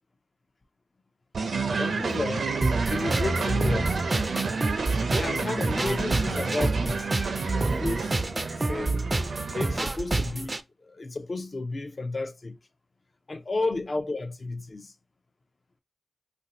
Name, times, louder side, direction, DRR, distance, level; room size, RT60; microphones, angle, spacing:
sound 1, 1.3-9.9, right 4 dB, 85° right, 0.5 m, -30 dB
voice 1, 1.8-2.5 2.9-4.5 5.1-7.1 7.5-8.2 8.6-9.1 9.5-12.6 13.3-14.9, left 3 dB, 50° left, 0.5 m, -32 dB
sound 2, 2.6-10.6, right 2 dB, 30° right, 0.3 m, -28 dB
2.6 x 2.2 x 4.0 m
wide cardioid pair, 65°, 0 cm